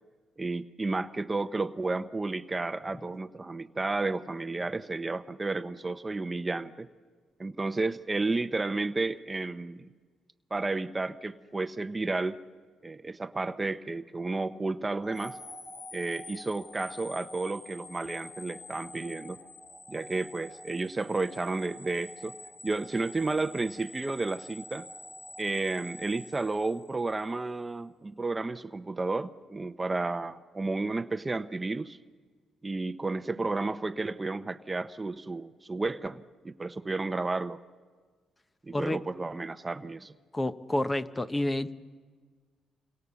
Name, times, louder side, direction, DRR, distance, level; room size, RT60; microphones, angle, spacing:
voice 1, 0.4-6.9 7.4-9.9 10.5-12.4 12.8-15.4 15.9-19.4 19.9-22.4 22.6-24.9 25.4-32.0 32.6-37.6 38.6-40.1, right 3 dB, 20° right, 12 dB, 0.8 m, -32 dB
sound 1, 15.0-27.2, left 1 dB, 55° left, 3.1 m, -47 dB
voice 2, 40.3-41.7, left 1 dB, 15° left, 12 dB, 0.9 m, -29 dB
29.5 x 25.0 x 7.0 m, 1.5 s
cardioid pair, 90°, 0 cm